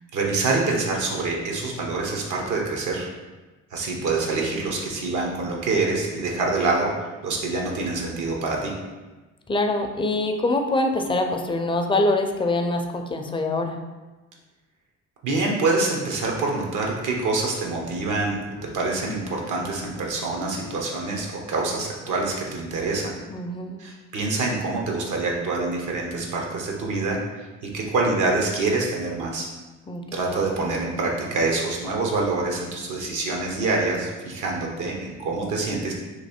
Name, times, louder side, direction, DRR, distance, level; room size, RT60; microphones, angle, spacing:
voice 1, 0.1-3.1 3.7-8.7 15.2-18.4 18.7-23.2 23.8-29.5 30.1-35.9, right 3 dB, 75° right, -1 dB, 1.0 m, -26 dB
voice 2, 9.5-13.8 23.3-23.8 29.9-30.2, left 2 dB, 15° left, 4 dB, 0.4 m, -24 dB
3.1 x 2.6 x 4.3 m, 1.2 s
cardioid pair, 90°, 30 cm